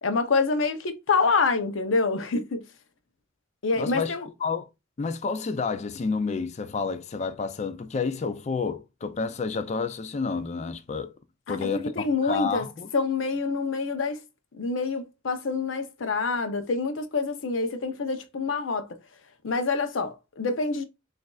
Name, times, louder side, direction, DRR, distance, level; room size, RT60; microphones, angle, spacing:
voice 1, 0.0-2.6 3.6-4.3 11.5-12.7 12.9-14.2 14.5-19.0 19.4-20.8, left 4 dB, 85° left, 0.7 m, -26 dB
voice 2, 3.8-4.1 4.4-4.7 5.0-11.1 11.5-11.9 12.2-12.9, left 5 dB, 35° left, 0.4 m, -30 dB
6.1 x 2.6 x 2.3 m
head